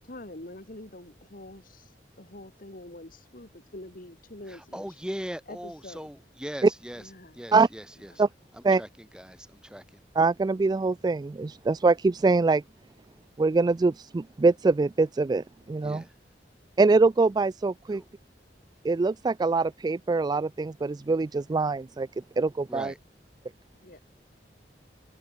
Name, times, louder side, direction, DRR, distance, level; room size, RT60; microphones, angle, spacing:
voice 1, 0.0-1.9 2.2-5.0 5.5-6.1 6.9-7.4 8.0-8.3 23.8-24.0, left 1 dB, 50° left, 3.1 m, -45 dB
voice 2, 4.5-7.0 7.3-8.1 8.5-9.8 15.8-16.1 17.9-18.1 22.7-23.0, equal, 5° right, 3.4 m, -40 dB
voice 3, 10.2-12.6 13.4-16.0 16.8-18.0 18.8-22.1 22.4-22.9, right 3 dB, 25° right, 0.3 m, -23 dB
head